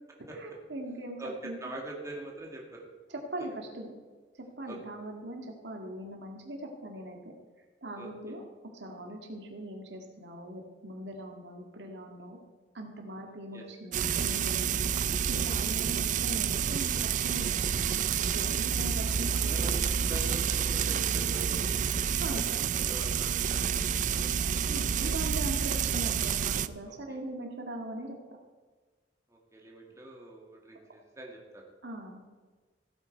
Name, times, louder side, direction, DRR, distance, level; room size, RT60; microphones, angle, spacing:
voice 1, 0.3-1.6 3.3-4.0 4.4-7.3 7.8-8.4 8.8-12.4 12.7-14.9 15.3-17.9 18.3-19.8 22.2-22.6 24.7-28.2 31.8-32.2, right 1 dB, 90° right, 2 dB, 1.9 m, -41 dB
voice 2, 1.2-2.8 4.7-4.8 8.0-8.4 13.5-13.6 16.1-16.2 19.3-19.8 20.1-21.8 22.2-24.4 26.9-27.2 29.3-31.6, right 1 dB, 20° right, -1 dB, 2.0 m, -44 dB
Frying (food), 13.9-26.7, right 7 dB, 45° right, 0.4 m, -29 dB
16.0 x 8.7 x 4.5 m, 1.4 s
head